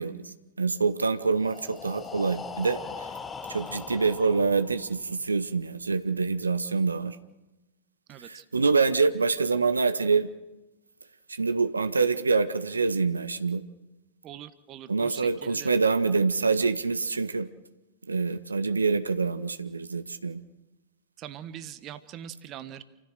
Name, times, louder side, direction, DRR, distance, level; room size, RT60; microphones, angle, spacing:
voice 1, 0.0-3.1 3.5-7.2 8.2-10.3 11.3-13.6 14.9-17.5 18.1-20.4, right 4 dB, 80° right, 11 dB, 0.9 m, -26 dB
Breathing, 1.3-5.1, left 5 dB, 15° left, 1.2 m, -40 dB
voice 2, 8.1-8.4 14.2-15.7 21.2-22.8, right 10 dB, 35° right, 12 dB, 1.3 m, -42 dB
28.5 x 15.5 x 6.6 m, 1.1 s
figure-of-eight pair, 95°, 0 cm